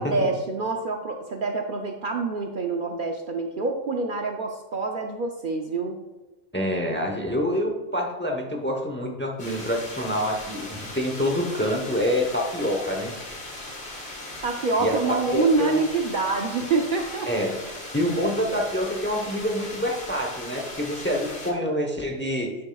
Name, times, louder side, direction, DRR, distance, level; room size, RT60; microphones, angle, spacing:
voice 1, 0.0-6.0 14.4-17.3, right 3 dB, 55° right, 3 dB, 0.7 m, -26 dB
voice 2, 6.5-13.1 14.8-15.8 17.3-17.6 17.9-22.6, left 1 dB, 10° left, 2 dB, 0.7 m, -26 dB
sound 1, 9.4-21.5, left 1 dB, 50° left, 1.7 m, -38 dB
9.6 x 6.7 x 2.3 m, 1.1 s
omnidirectional pair, 1.2 m